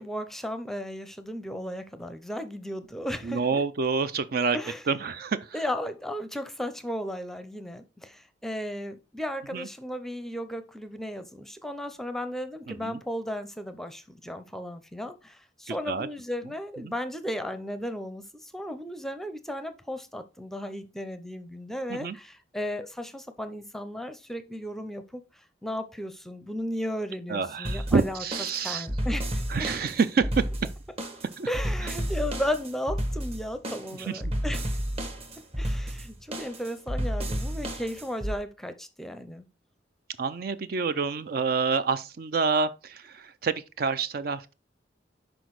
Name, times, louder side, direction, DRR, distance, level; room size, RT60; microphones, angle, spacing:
voice 1, 0.0-3.4 4.5-4.8 5.5-25.2 25.6-28.2 28.6-29.7 31.5-34.8 35.6-39.4, equal, ahead, 0.6 m, -35 dB
voice 2, 3.2-4.6 4.9-5.6 9.5-9.7 12.7-13.0 15.7-16.1 16.8-16.9 21.9-22.2 27.3-28.9 29.5-30.5 31.4-31.5 31.8-31.9 34.0-34.3 40.2-44.5, right 5 dB, 55° right, 0.4 m, -28 dB
sound 1, 27.6-38.3, equal, 35° right, 1.2 m, -32 dB
6.1 x 5.0 x 4.7 m
head